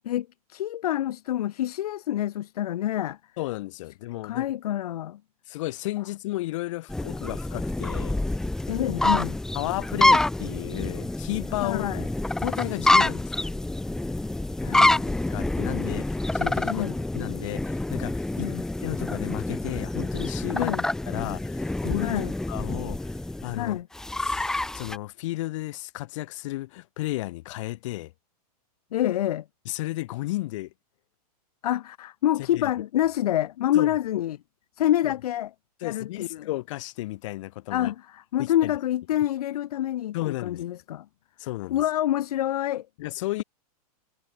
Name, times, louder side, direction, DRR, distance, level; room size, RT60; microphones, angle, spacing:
voice 1, 0.1-3.2 4.2-5.2 8.7-9.4 11.6-12.1 14.6-15.2 16.7-16.9 18.4-18.6 20.5-20.8 22.0-22.3 23.5-23.9 28.9-29.4 31.6-34.4 34.8-35.5 35.8-36.5 37.7-41.0 41.7-42.9, left 12 dB, 75° left, 1.2 m, -27 dB
voice 2, 3.4-4.5 5.5-8.2 9.5-11.9 12.4-13.3 15.3-18.5 18.8-20.8 21.1-22.1 22.5-23.1 23.4-23.8 24.2-24.4 24.7-28.1 29.6-30.7 32.5-32.7 33.7-33.9 35.8-37.9 38.4-38.7 40.1-40.7 41.4-41.8 43.0-43.4, left 18 dB, 55° left, 4.7 m, -33 dB
sound 1, 6.9-25.0, left 2 dB, 5° left, 0.6 m, -27 dB
supercardioid pair, 155°, 20 cm